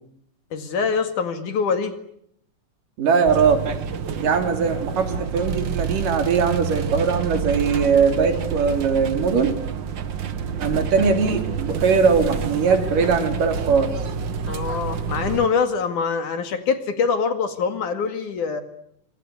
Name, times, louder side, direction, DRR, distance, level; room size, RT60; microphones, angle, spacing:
voice 1, 0.5-1.9 14.5-18.6, left 5 dB, 70° left, 8 dB, 3.5 m, -24 dB
voice 2, 3.0-3.7 4.2-9.6 10.6-13.9, right 5 dB, 80° right, 6 dB, 4.9 m, -20 dB
sound 1, 3.2-15.5, right 7 dB, 50° right, 1.5 m, -28 dB
27.0 x 24.5 x 8.3 m, 0.71 s
omnidirectional pair, 3.7 m